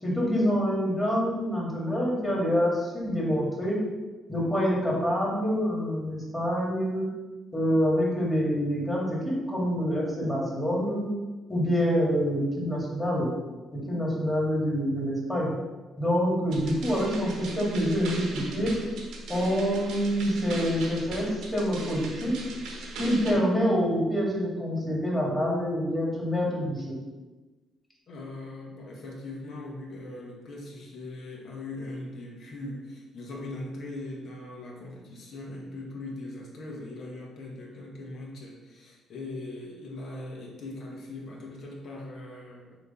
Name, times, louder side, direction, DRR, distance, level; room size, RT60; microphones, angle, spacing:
voice 1, 0.0-3.8 4.3-7.1 7.5-11.0 11.5-13.3 13.7-15.5 16.0-18.7 19.3-22.4 23.0-26.9, equal, 10° left, -5 dB, 2.2 m, -26 dB
sound 1, 16.5-23.3, right 2 dB, 85° right, 1.3 m, -39 dB
voice 2, 28.1-42.8, left 2 dB, 55° left, -2 dB, 1.7 m, -40 dB
6.3 x 3.2 x 5.5 m, 1.2 s
cardioid pair, 130°, 0 cm